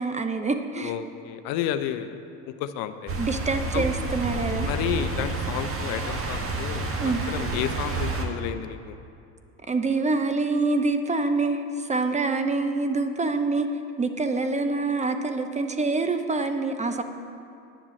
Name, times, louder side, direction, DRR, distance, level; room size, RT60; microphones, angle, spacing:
voice 1, 0.0-0.9 3.2-4.7 7.0-7.2 9.7-13.7 14.0-17.0, right 3 dB, 20° right, 7 dB, 0.8 m, -26 dB
voice 2, 0.8-3.1 3.7-3.8 4.6-9.0, left 10 dB, 65° left, 10 dB, 0.8 m, -31 dB
sound 1, 3.1-8.3, right 3 dB, 35° right, 1.6 m, -29 dB
9.9 x 7.3 x 7.1 m, 2.5 s
hypercardioid pair, 75°, 38 cm